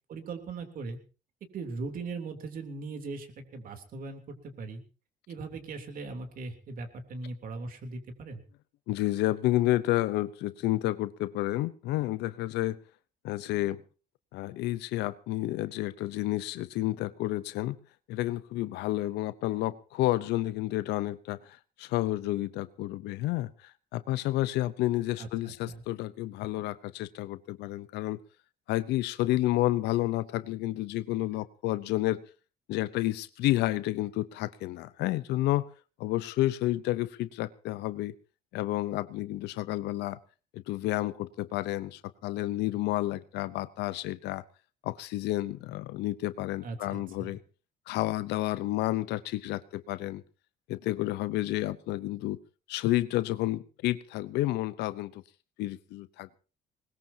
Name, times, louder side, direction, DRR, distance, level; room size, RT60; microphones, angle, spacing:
voice 1, 0.1-1.0 1.5-4.2 4.6-4.8 5.3-8.4 25.2-25.8 46.6-47.4, right 3 dB, 55° right, 6 dB, 3.3 m, -39 dB
voice 2, 8.9-12.8 13.2-13.8 14.3-17.8 18.1-28.2 28.7-32.2 32.7-35.6 36.0-38.1 38.5-40.2 40.5-44.4 44.8-47.4 47.9-50.2 50.7-52.4 52.7-55.2 55.6-56.4, left 16 dB, 85° left, 14 dB, 0.8 m, -30 dB
21.0 x 20.0 x 2.8 m, 0.35 s
cardioid pair, 110°, 17 cm